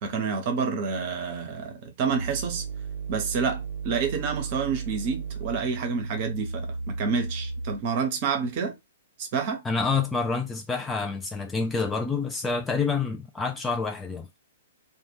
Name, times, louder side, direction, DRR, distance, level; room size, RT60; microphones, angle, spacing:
voice 1, 0.0-2.6 3.1-8.7 9.3-9.6, right 5 dB, 40° right, 0.8 m, -28 dB
sound 1, 2.1-8.1, right 4 dB, 65° right, 0.6 m, -34 dB
voice 2, 9.6-14.4, left 4 dB, 10° left, 0.3 m, -28 dB
2.5 x 2.2 x 3.3 m
figure-of-eight pair, 115°, 0 cm